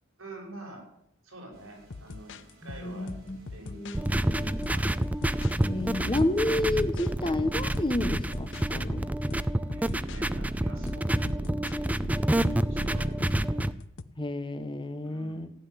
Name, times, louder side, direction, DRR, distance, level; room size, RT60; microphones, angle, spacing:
voice 1, 0.2-0.8 1.2-3.2 3.5-5.0 9.7-11.9 12.7-13.6 15.0-15.5, right 2 dB, 70° right, 1 dB, 6.2 m, -46 dB
sound 1, 1.5-11.9, right 1 dB, 50° right, 7.7 m, -58 dB
sound 2, 1.8-4.1 4.6-7.1 7.7-8.7 8.9-10.2 10.9-14.0, left 3 dB, 60° left, 0.7 m, -43 dB
voice 2, 2.8-4.6 5.6-9.1 14.2-15.5, left 1 dB, 25° left, 10 dB, 1.0 m, -31 dB
sound 3, 3.9-13.7, right 1 dB, 5° right, 0.5 m, -28 dB
15.5 x 7.9 x 10.0 m, 0.77 s
head